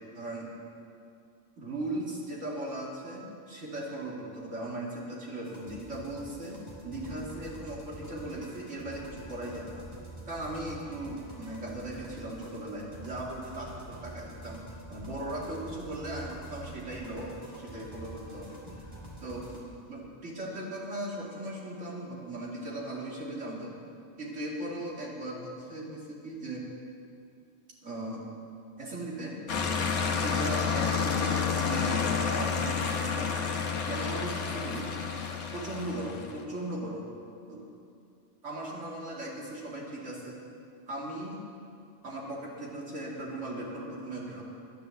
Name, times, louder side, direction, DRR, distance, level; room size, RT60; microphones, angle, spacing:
voice 1, 0.1-0.5 1.6-6.6 6.8-9.8 10.3-14.6 14.9-18.9 19.2-19.5 19.9-23.7 24.2-26.6 27.8-28.2 28.8-29.4 30.2-33.3 33.9-34.9 35.5-37.1 37.5-37.6 38.4-40.4 40.9-41.4 42.0-44.4, right 1 dB, 80° right, -4 dB, 2.9 m, -38 dB
sound 1, 5.4-19.6, right 1 dB, 20° right, 2.2 m, -46 dB
sound 2, 29.5-36.4, left 6 dB, 85° left, 1.4 m, -30 dB
11.5 x 10.5 x 7.3 m, 2.4 s
omnidirectional pair, 1.2 m